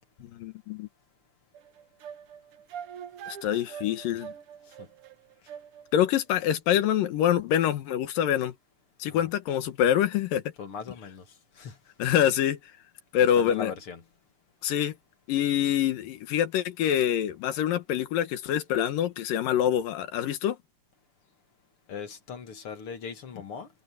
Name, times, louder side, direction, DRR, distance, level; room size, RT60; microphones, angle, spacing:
voice 1, 0.3-0.9 3.3-4.3 5.9-8.5 9.0-10.4 12.0-12.6 13.1-13.7 14.6-14.9 15.3-20.6, left 10 dB, 85° left, 3.0 m, -25 dB
sound 1, 1.5-6.1, right 8 dB, 60° right, 1.6 m, -44 dB
voice 2, 10.6-11.2 11.6-11.8 13.2-14.0 21.9-23.7, left 6 dB, 45° left, 2.2 m, -39 dB
omnidirectional pair, 3.8 m